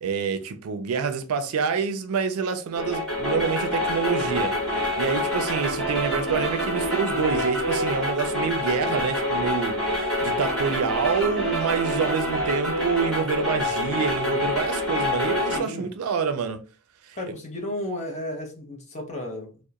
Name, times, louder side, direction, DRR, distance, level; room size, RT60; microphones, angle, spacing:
voice 1, 0.0-16.6 17.1-17.2, right 5 dB, 75° right, 0.4 m, -27 dB
sound 1, 2.8-15.6, left 1 dB, 5° left, 1.1 m, -26 dB
voice 2, 15.5-15.9 17.1-19.6, left 1 dB, 30° left, 0.7 m, -33 dB
2.8 x 2.0 x 2.3 m
head